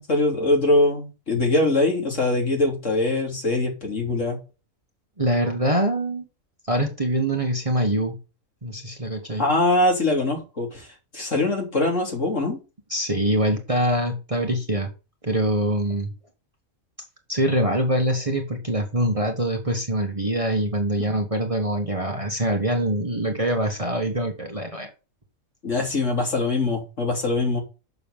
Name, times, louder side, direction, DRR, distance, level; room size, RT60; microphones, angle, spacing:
voice 1, 0.0-4.4 9.4-10.9 11.1-12.6 25.6-27.6, left 2 dB, 60° left, 3.6 m, -22 dB
voice 2, 5.2-6.2 6.7-8.2 8.6-9.5 12.9-14.9 15.2-16.1 17.3-24.9, right 1 dB, 25° right, 1.4 m, -24 dB
6.8 x 6.7 x 5.5 m
omnidirectional pair, 1.5 m